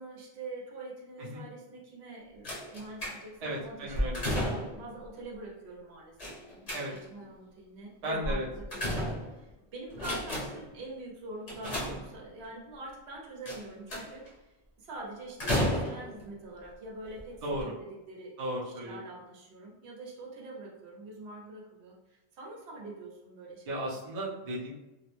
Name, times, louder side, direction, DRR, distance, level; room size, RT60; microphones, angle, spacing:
voice 1, 0.0-14.5 14.8-17.4 17.6-18.3 18.6-23.9, right 2 dB, 80° right, -1 dB, 0.9 m, -45 dB
sound 1, 2.4-3.5 3.9-4.9 6.2-7.2 8.2-9.5 9.9-10.7 11.5-12.5 13.5-14.3 15.4-16.2 17.0-17.2 17.5-17.6, equal, 40° left, 0.8 m, -33 dB
voice 2, 3.4-4.2 6.7-6.9 8.0-8.5 17.4-17.7 18.4-19.0 23.7-24.7, right 1 dB, 45° right, -4 dB, 0.6 m, -35 dB
2.3 x 2.0 x 3.0 m, 1.0 s
omnidirectional pair, 1.1 m